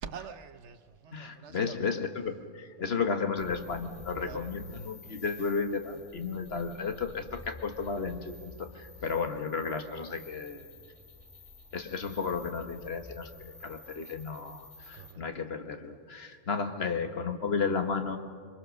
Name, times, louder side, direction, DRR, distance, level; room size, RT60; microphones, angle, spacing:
voice 1, 0.0-1.8 4.2-4.5 14.9-15.2 16.3-16.4, right 6 dB, 70° right, 11 dB, 1.2 m, -45 dB
voice 2, 1.1-10.7 11.7-18.2, left 5 dB, 55° left, 6 dB, 1.5 m, -33 dB
sound 1, 3.4-15.1, left 2 dB, 25° left, 2.3 m, -51 dB
27.0 x 24.0 x 6.4 m, 2.1 s
omnidirectional pair, 1.2 m